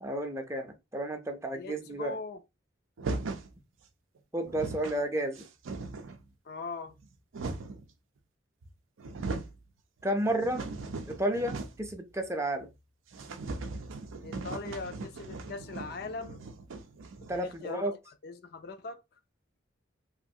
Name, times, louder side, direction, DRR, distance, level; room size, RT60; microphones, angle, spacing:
voice 1, 0.0-2.2 4.3-5.4 10.0-10.7 11.1-12.7 17.3-17.9, right 1 dB, 15° right, 0.5 m, -32 dB
voice 2, 1.5-2.4 6.5-6.9 14.2-16.4 17.2-17.9 18.2-19.0, left 3 dB, 55° left, 0.4 m, -40 dB
sound 1, 3.0-3.5 4.2-4.3 4.4-5.0 5.4-6.2 6.9-7.9 8.6-8.7 9.0-9.6 10.0-11.9 12.2-12.3 12.6-12.7 13.1-17.6, right 3 dB, 85° right, 0.5 m, -39 dB
3.1 x 2.4 x 2.7 m
head